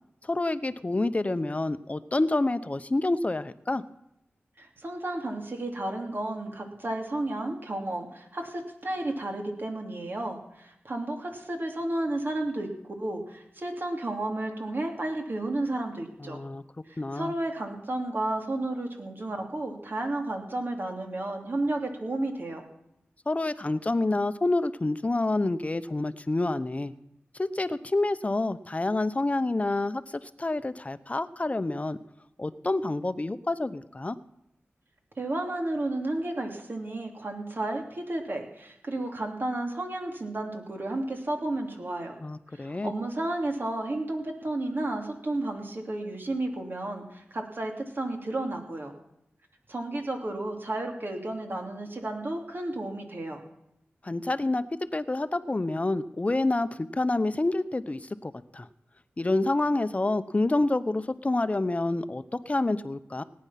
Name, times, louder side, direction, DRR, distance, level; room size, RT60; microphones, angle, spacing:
voice 1, 0.2-3.8 16.2-16.6 17.0-17.3 23.3-26.9 27.4-32.0 32.4-34.2 42.2-42.9 54.0-54.6 54.9-58.7 59.2-63.2, left 2 dB, 35° left, 13 dB, 0.9 m, -28 dB
voice 2, 4.6-12.7 13.0-16.4 16.9-22.6 35.2-42.2 42.5-48.9 49.7-53.4, right 2 dB, 55° right, 2 dB, 2.9 m, -32 dB
18.0 x 9.8 x 5.8 m, 0.81 s
wide cardioid pair, 55°, 4 cm